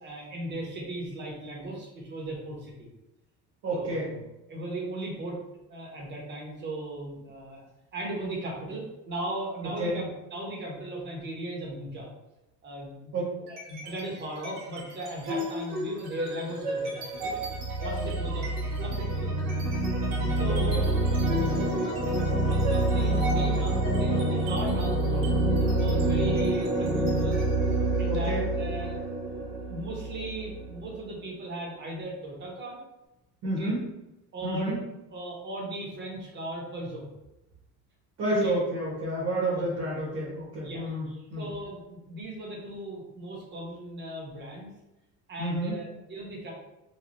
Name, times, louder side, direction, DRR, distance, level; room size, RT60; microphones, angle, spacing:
voice 1, 0.0-2.9 3.7-4.2 4.5-5.4 5.7-7.7 7.9-12.1 12.6-13.1 13.6-17.4 17.8-18.5 18.8-19.5 20.2-21.0 21.4-21.8 22.6-25.2 25.7-27.4 28.0-29.0 29.3-32.8 33.6-33.7 34.3-34.8 35.1-37.1 38.3-38.5 39.5-39.7 40.6-40.8 41.4-44.7 45.3-46.5, right 1 dB, 35° right, -2 dB, 0.9 m, -37 dB
voice 2, 3.6-4.1 9.6-10.0 13.1-13.5 18.0-18.1 20.5-20.8 28.1-28.4 33.4-33.8 34.4-34.8 38.2-41.5 45.4-45.8, right 1 dB, 55° right, -6 dB, 1.1 m, -30 dB
sound 1, 13.5-14.0 14.4-31.0, right 1 dB, 85° right, 0.9 m, -27 dB
3.2 x 2.3 x 2.6 m, 0.95 s
cardioid pair, 145°, 32 cm